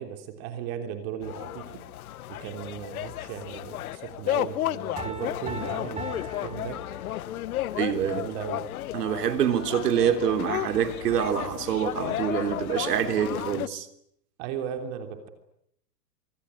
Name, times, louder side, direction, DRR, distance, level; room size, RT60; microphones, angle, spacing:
voice 1, 0.0-1.8 2.3-6.8 8.0-8.6 14.4-15.3, right 8 dB, 40° right, 3.3 m, -36 dB
sound 1, 1.2-13.7, left 14 dB, 60° left, 1.1 m, -33 dB
Piano, 5.0-7.5, right 2 dB, 10° right, 5.0 m, -39 dB
voice 2, 7.7-8.2 8.9-13.9, right 9 dB, 70° right, 3.6 m, -26 dB
25.5 x 21.5 x 9.9 m
hypercardioid pair, 145°, 49 cm